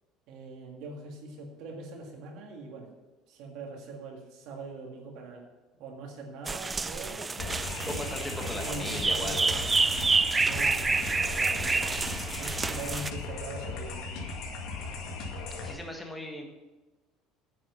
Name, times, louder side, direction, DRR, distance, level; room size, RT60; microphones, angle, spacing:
voice 1, 0.3-2.9 3.3-5.5 5.7-7.3 7.8-9.6 10.5-10.9 11.3-14.0, right 2 dB, 60° right, 1 dB, 1.8 m, -42 dB
sound 1, 6.5-13.1, right 4 dB, 15° right, 0.3 m, -28 dB
sound 2, 7.4-15.7, left 3 dB, 65° left, 2.1 m, -37 dB
voice 2, 7.9-9.6 15.6-16.5, left 1 dB, 5° left, 2 dB, 1.4 m, -38 dB
9.6 x 7.2 x 7.0 m, 1.2 s
cardioid pair, 155°, 0 cm